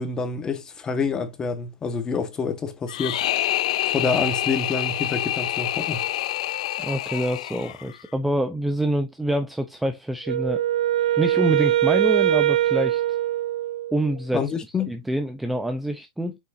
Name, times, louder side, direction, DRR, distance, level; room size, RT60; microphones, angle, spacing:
voice 1, 0.0-3.2 3.9-6.0 14.3-14.9, left 5 dB, 20° left, 1.4 m, -27 dB
sound 1, 2.9-8.0, left 13 dB, 65° left, 0.4 m, -27 dB
voice 2, 6.8-10.6 11.2-13.0 13.9-14.4 14.9-16.4, right 1 dB, 5° right, 0.6 m, -26 dB
Wind instrument woodwind instrument, 10.2-14.1, right 13 dB, 80° right, 0.6 m, -22 dB
6.4 x 5.5 x 2.6 m
hypercardioid pair, 130°, 4 cm